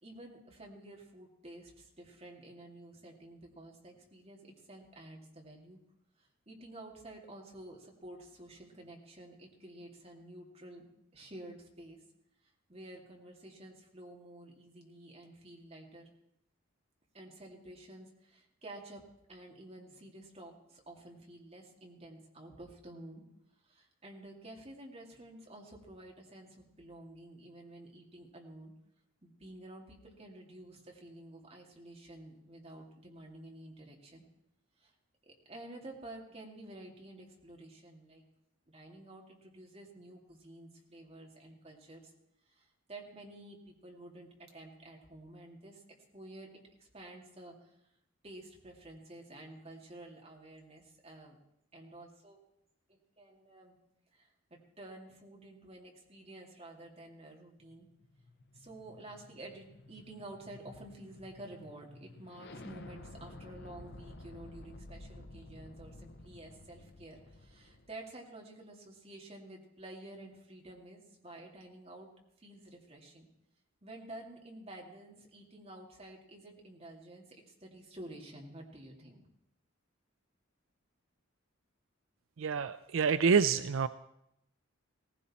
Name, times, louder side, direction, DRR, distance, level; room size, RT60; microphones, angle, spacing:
voice 1, 0.0-5.8 6.2-10.9 11.1-12.1 12.7-16.1 17.1-23.2 23.6-28.7 29.2-34.2 34.8-34.9 35.3-38.2 38.7-42.1 42.5-45.8 46.1-47.8 48.2-51.4 51.7-52.4 52.9-53.7 54.1-57.9 58.5-72.1 72.4-73.3 73.8-79.3, right 1 dB, 30° right, 0 dB, 2.5 m, -51 dB
sound 1, 57.7-67.9, left 2 dB, 55° left, 0.9 m, -52 dB
voice 2, 82.4-83.9, right 6 dB, 75° right, 13 dB, 0.5 m, -27 dB
18.0 x 15.5 x 4.3 m, 0.79 s
head